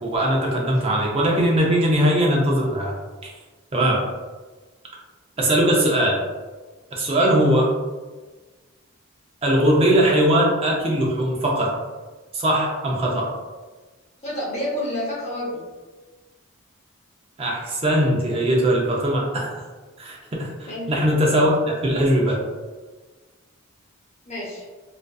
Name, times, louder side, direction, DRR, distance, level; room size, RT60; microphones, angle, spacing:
voice 1, 0.0-2.9 3.2-3.3 3.7-4.1 5.4-6.2 6.9-7.7 9.4-11.7 12.3-13.3 17.4-19.6 20.0-22.4, right 1 dB, 25° right, -2 dB, 0.4 m, -20 dB
voice 2, 14.2-15.6 20.7-21.1 24.2-24.6, left 1 dB, 30° left, -6 dB, 0.7 m, -29 dB
2.5 x 2.3 x 2.2 m, 1.3 s
head